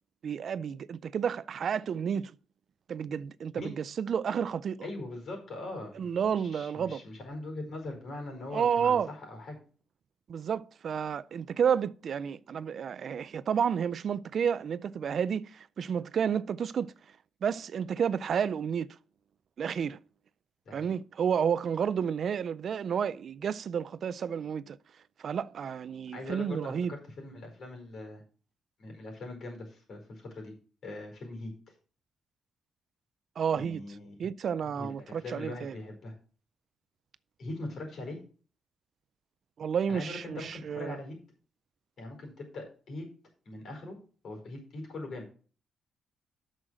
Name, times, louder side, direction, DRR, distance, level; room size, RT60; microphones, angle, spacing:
voice 1, 0.2-2.3 2.9-4.8 6.0-7.0 8.5-9.1 10.3-16.9 17.4-19.0 19.6-20.0 20.7-24.8 25.2-26.9 33.4-33.8 34.2-35.7 39.6-41.0, right 7 dB, 50° right, 0.4 m, -31 dB
voice 2, 4.8-9.6 20.6-20.9 26.1-28.2 28.8-30.5 30.8-31.7 33.5-34.3 34.7-36.1 37.4-38.2 39.9-41.2 42.0-43.1 43.4-44.0 44.2-45.3, left 2 dB, 55° left, 4.7 m, -41 dB
8.5 x 6.4 x 6.3 m
cardioid pair, 135°, 0 cm